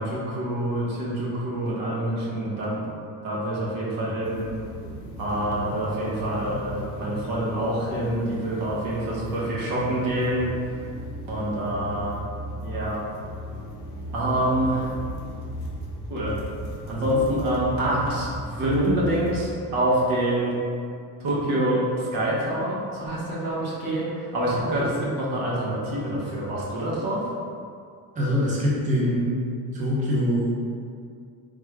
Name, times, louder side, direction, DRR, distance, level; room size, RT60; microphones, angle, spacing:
voice 1, 0.0-2.9 3.2-4.5 5.2-10.5 11.3-12.2 12.6-13.0 14.1-14.9 16.1-16.4 16.9-20.6 21.2-27.3, right 1 dB, 75° right, -6 dB, 1.0 m, -26 dB
sound 1, 4.2-19.6, equal, 65° left, 0.6 m, -36 dB
voice 2, 28.2-29.4 29.7-30.5, equal, 20° right, -6 dB, 0.5 m, -23 dB
3.4 x 2.3 x 3.1 m, 2.3 s
cardioid pair, 145°, 35 cm